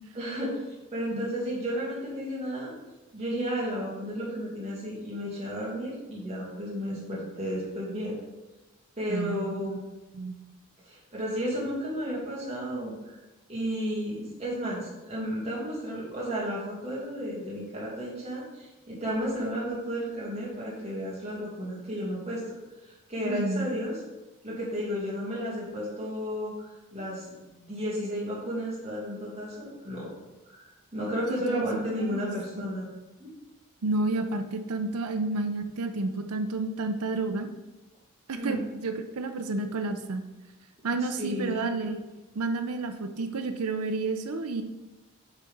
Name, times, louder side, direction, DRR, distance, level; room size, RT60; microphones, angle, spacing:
voice 1, 0.2-0.5 0.9-2.7 3.1-8.2 9.0-9.8 10.9-13.2 13.5-22.4 23.1-24.0 24.4-26.7 26.9-30.1 30.5-32.9 33.2-33.3 38.3-38.6 41.2-41.7, equal, 30° right, -6 dB, 2.2 m, -33 dB
voice 2, 9.1-9.6 10.1-10.4 23.2-23.7 31.3-32.7 33.8-37.5 38.3-40.2 40.8-42.0 42.3-44.6, right 3 dB, 90° right, 8 dB, 0.6 m, -31 dB
6.0 x 4.2 x 5.3 m, 1.1 s
head